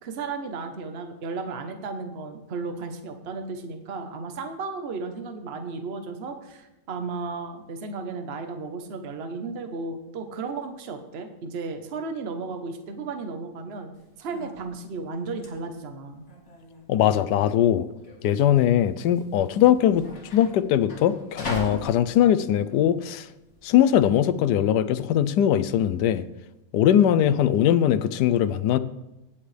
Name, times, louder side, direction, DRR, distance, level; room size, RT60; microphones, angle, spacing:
voice 1, 0.0-13.9 14.2-16.2, right 4 dB, 45° right, 6 dB, 1.1 m, -34 dB
sound 1, 13.9-24.0, left 1 dB, 45° left, 1.9 m, -40 dB
voice 2, 16.9-17.9 18.2-20.1 20.3-23.3 23.6-26.3 26.7-28.8, left 10 dB, 80° left, 14 dB, 1.2 m, -21 dB
17.0 x 7.3 x 3.3 m, 0.94 s
omnidirectional pair, 1.8 m